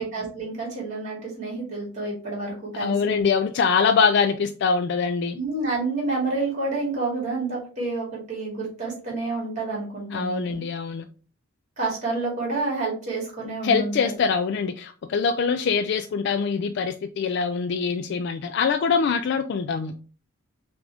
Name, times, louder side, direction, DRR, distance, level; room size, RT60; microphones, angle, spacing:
voice 1, 0.0-3.2 5.3-10.6 11.8-14.1, right 3 dB, 35° right, 2.4 m, -29 dB
voice 2, 2.8-5.4 10.1-11.0 13.6-19.9, left 5 dB, 55° left, 0.3 m, -23 dB
5.9 x 2.5 x 3.4 m
head